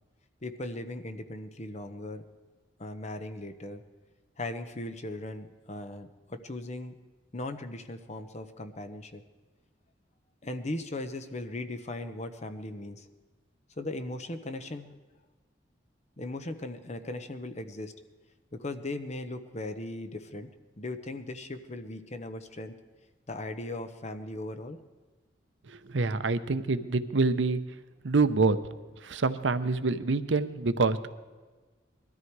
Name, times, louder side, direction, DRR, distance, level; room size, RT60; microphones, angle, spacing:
voice 1, 0.4-2.2 2.8-3.8 4.4-7.0 7.3-9.2 10.4-13.1 13.8-15.0 16.2-17.9 18.5-20.5 20.8-22.8 23.3-24.8, left 2 dB, 40° left, 8 dB, 1.0 m, -38 dB
voice 2, 25.9-27.6 28.0-28.6 29.0-31.1, right 3 dB, 85° right, 12 dB, 0.7 m, -26 dB
20.5 x 13.5 x 4.7 m, 1.3 s
head